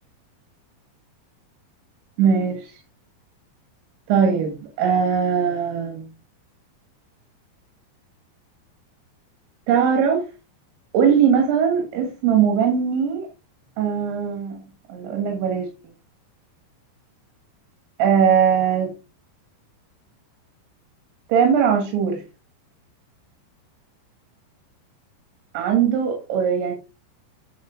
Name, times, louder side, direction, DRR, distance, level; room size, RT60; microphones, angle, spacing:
voice 1, 2.2-2.7 4.1-6.1 9.7-10.3 10.9-13.3 13.8-14.6 14.9-15.7 18.0-18.9 21.3-22.2 25.5-26.7, right 7 dB, 80° right, 3.9 m, -20 dB
11.0 x 5.0 x 3.6 m
omnidirectional pair, 5.2 m